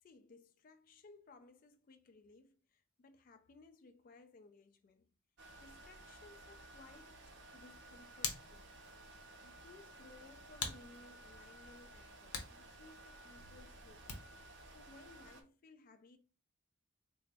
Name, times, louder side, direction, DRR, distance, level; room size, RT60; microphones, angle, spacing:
voice 1, 0.0-5.2 5.6-8.7 9.1-14.2 14.7-16.2, left 3 dB, 40° left, 0.3 m, -61 dB
sound 1, 5.4-15.4, right 2 dB, 50° right, 0.6 m, -56 dB
Hands, 7.6-14.5, left 5 dB, 85° left, 0.7 m, -48 dB
3.8 x 2.0 x 3.3 m
head